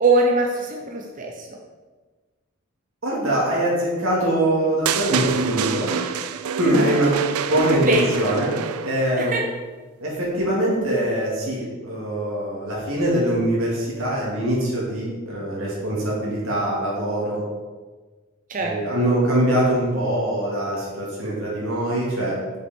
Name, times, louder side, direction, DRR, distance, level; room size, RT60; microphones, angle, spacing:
voice 1, 0.0-1.5 6.6-7.0 7.7-8.1 9.2-9.4 18.5-18.7, right 2 dB, 40° right, 1 dB, 0.7 m, -22 dB
voice 2, 3.0-6.0 6.6-7.2 7.5-8.5 8.8-9.3 10.0-17.5 18.6-22.4, right 1 dB, 70° right, -6 dB, 2.4 m, -23 dB
sound 1, 4.9-9.1, right 7 dB, 85° right, 0.4 m, -27 dB
6.6 x 5.8 x 4.4 m, 1.3 s
head